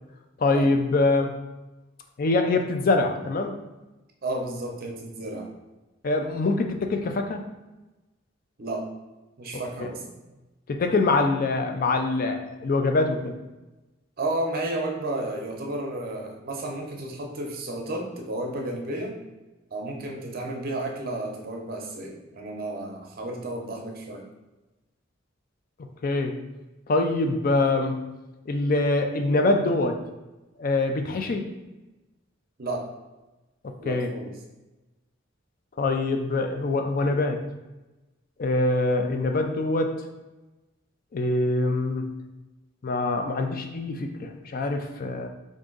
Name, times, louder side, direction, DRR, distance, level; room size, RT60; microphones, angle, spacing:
voice 1, 0.4-1.3 2.2-3.5 6.0-7.4 10.7-13.4 26.0-26.4 26.9-28.0 28.5-30.0 30.6-31.5 33.6-34.1 35.8-37.4 38.4-39.9 41.1-42.1 42.8-45.3, left 2 dB, 45° left, 5 dB, 0.4 m, -24 dB
voice 2, 4.2-5.5 8.6-8.9 9.4-10.0 14.2-19.1 19.7-24.2 32.6-32.9 33.8-34.3, right 1 dB, 50° right, 1 dB, 0.7 m, -32 dB
3.6 x 2.6 x 3.8 m, 1.1 s
head